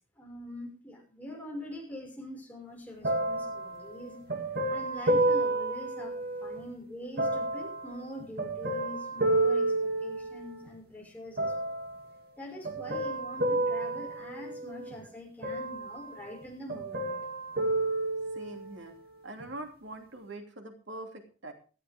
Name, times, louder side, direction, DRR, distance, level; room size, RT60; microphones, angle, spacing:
voice 1, 0.0-4.2 4.7-6.2 6.4-11.7 12.4-17.1, left 1 dB, 10° left, 0 dB, 5.8 m, -44 dB
sound 1, 3.0-6.6 7.2-10.7 11.4-12.0 12.6-15.0 15.4-16.4 16.7-18.7 19.4-19.5, right 2 dB, 55° right, 2.5 m, -31 dB
voice 2, 18.3-19.0 19.2-21.5, right 2 dB, 70° right, 4 dB, 2.9 m, -43 dB
18.0 x 14.0 x 3.7 m, 0.36 s
head